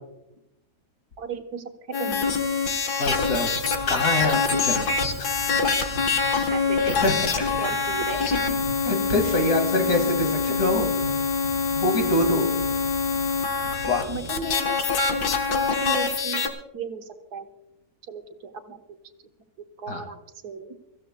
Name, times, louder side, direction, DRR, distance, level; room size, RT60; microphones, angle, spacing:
voice 1, 1.2-2.3 6.4-7.1 7.6-8.6 9.2-9.4 14.1-16.5 16.7-17.5 18.1-18.8 19.8-20.2 20.4-20.7, right 4 dB, 80° right, 6 dB, 1.8 m, -35 dB
sound 1, 1.9-16.5, left 5 dB, 80° left, 1.8 m, -25 dB
voice 2, 3.0-3.5 3.9-4.9 5.2-5.3 6.3-6.5 6.8-7.7 8.9-10.9 11.7-12.5 13.9-14.1 19.9-20.0, left 2 dB, 60° left, 4 dB, 2.5 m, -25 dB
sound 2, 3.2-14.3, right 3 dB, 50° right, 2.4 m, -40 dB
24.5 x 15.0 x 2.2 m, 0.90 s
omnidirectional pair, 1.7 m